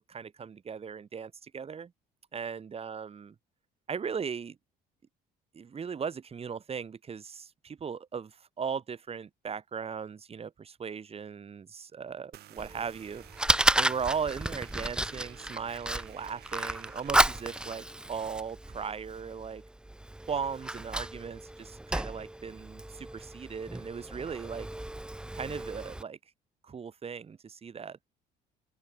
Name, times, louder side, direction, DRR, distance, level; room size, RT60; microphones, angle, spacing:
voice 1, 0.1-1.9 2.3-3.3 3.9-4.6 5.5-13.2 13.8-19.6 20.3-24.7 25.3-26.2 26.6-28.0, right 6 dB, 35° right, 7.3 m, -38 dB
sound 1, 12.3-17.8, right 14 dB, 70° right, 5.6 m, -53 dB
Fire, 12.6-26.0, right 1 dB, 5° right, 0.6 m, -32 dB
open air
cardioid pair, 110°, 17 cm